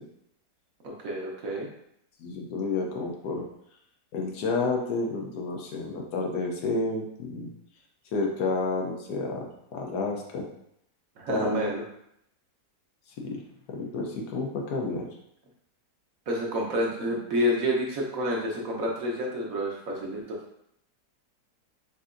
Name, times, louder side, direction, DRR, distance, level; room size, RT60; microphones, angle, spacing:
voice 1, 0.8-1.7 11.2-11.8 16.3-20.2, equal, 60° right, -1 dB, 1.2 m, -29 dB
voice 2, 2.2-3.4 4.1-7.5 8.1-10.5 11.3-11.6 13.2-13.4 13.7-15.1, left 3 dB, 75° left, 0 dB, 1.3 m, -30 dB
6.6 x 2.7 x 2.5 m, 0.75 s
omnidirectional pair, 1.8 m